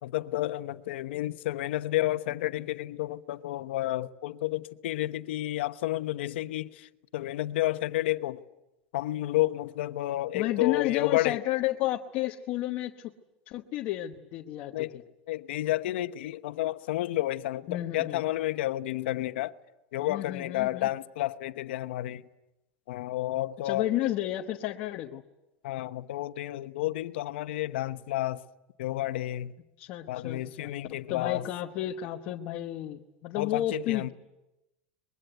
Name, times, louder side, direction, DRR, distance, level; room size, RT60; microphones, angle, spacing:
voice 1, 0.0-8.4 8.9-11.4 14.7-15.0 15.3-19.6 19.9-22.2 22.9-23.8 25.6-28.4 28.8-29.5 30.1-31.5 33.3-34.1, left 16 dB, 80° left, 1.0 m, -31 dB
voice 2, 10.3-13.1 13.5-15.0 17.7-18.2 20.0-20.9 23.6-25.2 29.8-30.8 31.1-34.1, left 13 dB, 35° left, 1.1 m, -32 dB
24.0 x 22.0 x 9.2 m
supercardioid pair, 175°, 6 cm